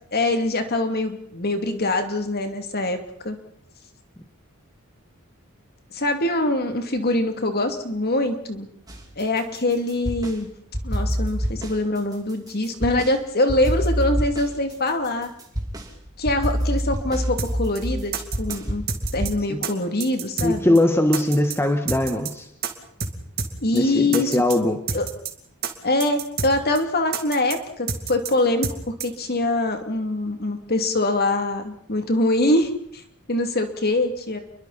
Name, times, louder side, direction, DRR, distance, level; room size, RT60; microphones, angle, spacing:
voice 1, 0.1-3.0 3.2-3.4 5.9-8.7 9.2-10.5 10.8-15.3 16.2-18.1 18.4-18.8 19.1-20.8 23.6-24.4 24.9-25.1 25.8-28.7 29.0-33.0 33.3-34.4, left 2 dB, 50° left, 5 dB, 2.7 m, -23 dB
sound 1, 8.9-10.4 10.7-13.1 13.5-19.3, equal, 20° right, 3.3 m, -27 dB
sound 2, 17.4-17.5 17.8-17.9 18.1-18.6 18.9-19.3 19.6-19.7 20.0-20.5 20.8-20.9 21.1-21.6 21.9-22.3 22.6-22.7 23.0-23.1 23.4-23.5 23.8-23.9 24.1-24.6 24.9-25.3 25.6-25.7 26.0-26.5 26.8-26.9 27.1-27.6 27.9-28.3 28.6-28.8 29.0-29.1, right 6 dB, 50° right, 2.7 m, -28 dB
voice 2, 20.4-22.5 23.7-24.8, left 1 dB, 10° left, 6 dB, 1.5 m, -21 dB
29.5 x 23.0 x 4.2 m, 0.66 s
head